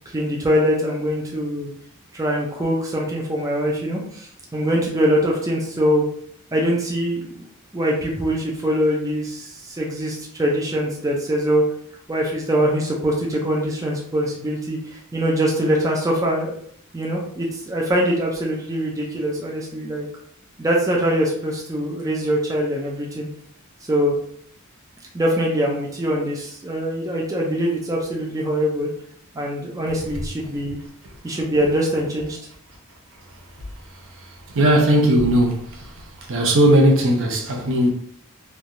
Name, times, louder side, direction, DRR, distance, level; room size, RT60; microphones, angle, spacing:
voice 1, 0.1-1.7 2.1-6.1 6.5-7.4 7.7-11.6 12.1-16.5 16.9-20.1 20.6-23.3 23.9-24.2 25.1-28.9 29.3-30.8 31.2-32.4, equal, 15° right, 0.4 m, -23 dB
voice 2, 34.5-35.9 36.3-37.9, right 1 dB, 60° right, 0.6 m, -17 dB
3.1 x 2.3 x 2.6 m
head